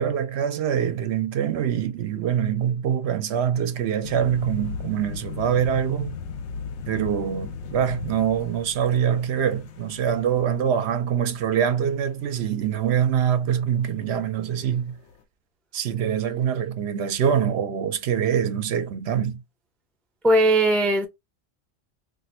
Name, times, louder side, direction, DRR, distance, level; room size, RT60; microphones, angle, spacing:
voice 1, 0.0-6.2 6.9-15.0 15.7-19.4, right 8 dB, 70° right, 0.8 m, -24 dB
sound 1, 4.0-13.4 13.6-14.0 14.3-14.7 15.0-15.1, left 5 dB, 85° left, 0.9 m, -37 dB
voice 2, 20.2-21.1, right 1 dB, ahead, 0.4 m, -18 dB
2.5 x 2.5 x 4.2 m
omnidirectional pair, 1.1 m